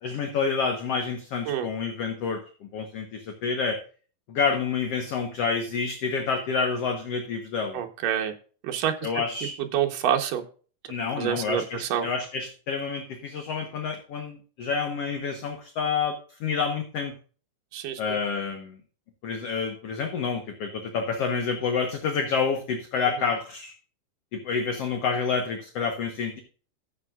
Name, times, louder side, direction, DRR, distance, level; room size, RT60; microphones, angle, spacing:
voice 1, 0.0-3.8 4.3-7.8 9.0-9.5 10.9-17.1 18.0-18.8 19.2-23.7 24.3-26.4, left 5 dB, 60° left, 5 dB, 1.7 m, -28 dB
voice 2, 7.7-8.3 8.6-9.0 9.7-10.4 11.2-12.1 17.7-18.0 23.2-23.3, right 10 dB, 70° right, 4 dB, 2.7 m, -27 dB
14.0 x 7.9 x 2.4 m, 0.39 s
omnidirectional pair, 4.1 m